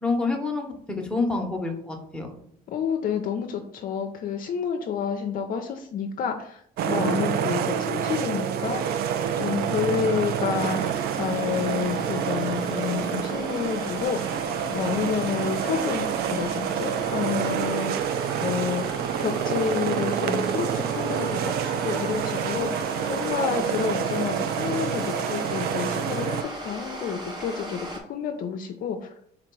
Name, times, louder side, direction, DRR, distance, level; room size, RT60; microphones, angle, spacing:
voice 1, 0.0-2.4, left 3 dB, 5° left, 1 dB, 1.0 m, -28 dB
voice 2, 2.7-9.0 9.4-14.4 14.7-18.8 19.2-29.1, left 7 dB, 55° left, 4 dB, 0.5 m, -29 dB
sound 1, 6.8-26.4, right 8 dB, 65° right, 0.4 m, -27 dB
sound 2, 8.6-28.0, right 1 dB, 25° right, 1.2 m, -39 dB
4.0 x 2.9 x 4.5 m, 0.68 s
cardioid pair, 110°, 17 cm